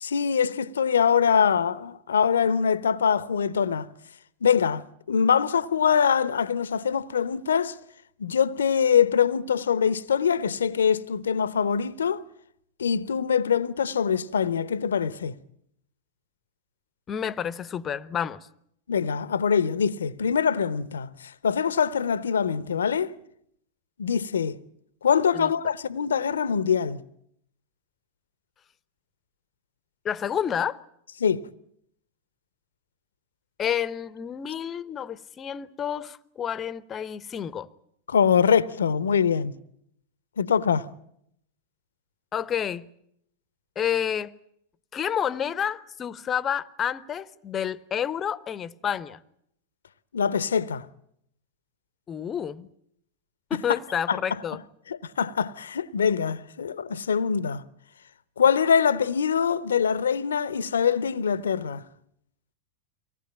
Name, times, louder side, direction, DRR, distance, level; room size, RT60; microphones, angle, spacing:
voice 1, 0.0-3.9 4.4-7.7 8.2-12.2 12.8-15.3 18.9-21.1 21.4-23.1 24.0-24.6 25.0-27.0 31.2-31.5 38.1-39.5 40.4-40.9 50.1-50.9 54.1-54.2 54.9-57.6 58.4-61.8, left 7 dB, 70° left, 0.8 m, -23 dB
voice 2, 17.1-18.5 25.3-25.5 30.0-30.8 33.6-37.7 42.3-42.9 43.8-44.3 44.9-49.2 52.1-52.7 53.5-54.6, left 8 dB, 25° left, 0.9 m, -29 dB
24.5 x 18.5 x 8.8 m
figure-of-eight pair, 90°, 0 cm